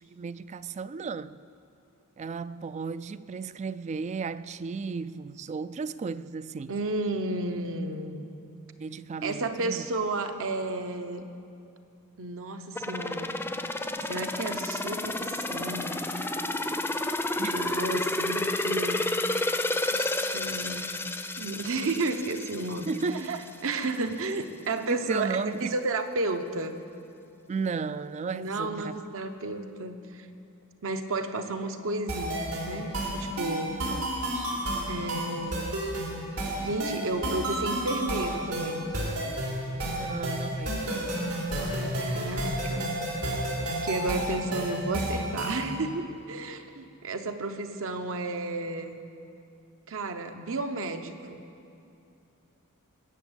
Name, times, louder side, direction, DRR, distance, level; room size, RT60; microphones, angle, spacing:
voice 1, 0.0-1.4 2.2-6.7 8.8-9.9 17.4-17.6 22.9-23.3 24.9-25.8 27.5-29.0 33.9-34.1 34.3-34.5 40.0-41.4 44.9-45.0, right 4 dB, 30° right, 0.3 m, -34 dB
voice 2, 6.7-8.3 9.2-11.2 12.2-13.3 14.0-16.0 17.5-19.4 19.9-20.9 21.4-22.9 23.3-26.8 28.3-30.3 30.8-33.8 34.9-35.8 36.6-38.9 41.5-42.9 43.2-43.4 43.8-49.0 49.9-51.4, right 2 dB, 65° right, 1.0 m, -32 dB
sound 1, 12.8-23.5 23.9-24.0, left 2 dB, 10° left, 0.6 m, -31 dB
sound 2, 32.1-45.7, right 1 dB, 85° right, 3.4 m, -31 dB
21.0 x 7.1 x 8.1 m
head